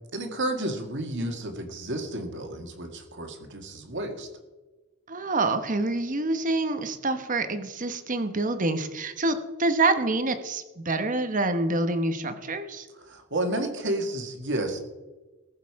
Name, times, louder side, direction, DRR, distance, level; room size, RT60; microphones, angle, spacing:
voice 1, 0.1-4.3 13.0-14.8, right 1 dB, 55° right, 4 dB, 1.9 m, -31 dB
voice 2, 5.1-12.9, right 2 dB, 35° right, 9 dB, 1.1 m, -26 dB
19.5 x 6.7 x 4.8 m, 1.2 s
head